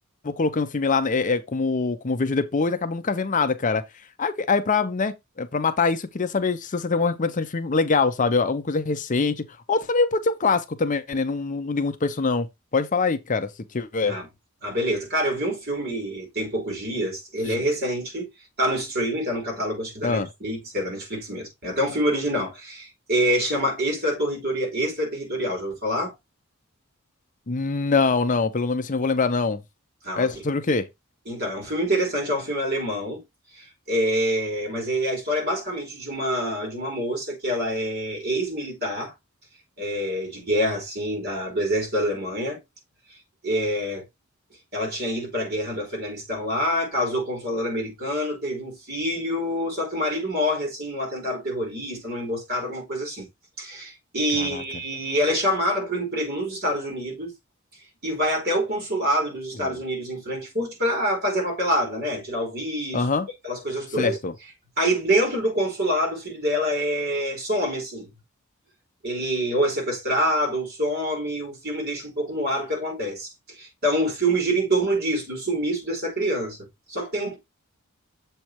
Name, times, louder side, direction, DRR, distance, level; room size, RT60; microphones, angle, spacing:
voice 1, 0.2-3.8 4.2-12.5 12.7-13.5 13.7-14.2 17.5-17.6 20.0-20.3 27.5-29.6 30.2-30.9 54.4-54.6 59.6-59.7 62.9-63.3 64.0-64.3, left 4 dB, 40° left, 0.6 m, -24 dB
voice 2, 14.6-18.3 18.6-26.1 30.0-30.4 31.3-33.2 33.5-39.1 39.8-42.6 43.4-44.0 44.7-53.3 53.6-57.3 58.0-63.1 63.4-64.2 64.8-68.1 69.0-76.6 76.9-77.4, equal, 50° right, 3.8 m, -26 dB
7.3 x 3.3 x 4.5 m
head